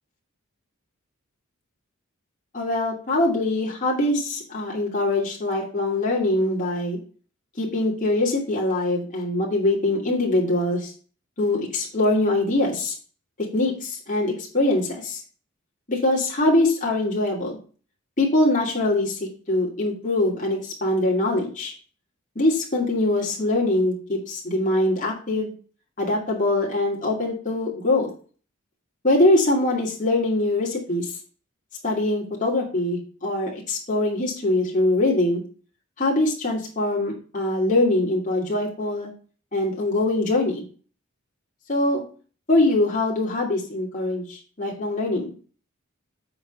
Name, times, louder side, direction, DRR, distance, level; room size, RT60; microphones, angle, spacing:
voice 1, 2.5-7.0 7.6-10.9 11.4-12.9 13.5-15.2 15.9-17.6 18.2-21.7 22.3-25.5 26.0-28.1 29.0-31.1 31.8-35.4 36.0-39.1 39.5-40.6 41.7-42.0 42.5-45.3, left 2 dB, 40° left, -3 dB, 2.7 m, -23 dB
8.0 x 5.0 x 5.4 m, 0.39 s
head